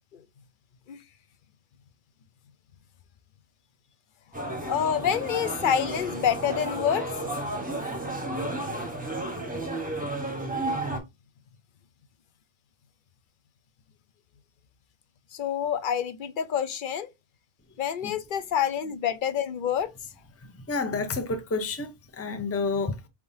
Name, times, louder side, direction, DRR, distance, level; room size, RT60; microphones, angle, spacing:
sound 1, 4.3-11.0, right 2 dB, 10° right, 0.9 m, -32 dB
voice 1, 4.6-7.1 15.3-17.1 17.8-19.9, left 9 dB, 60° left, 0.7 m, -27 dB
voice 2, 20.4-23.1, left 3 dB, 20° left, 0.5 m, -30 dB
4.7 x 3.6 x 2.7 m
omnidirectional pair, 1.1 m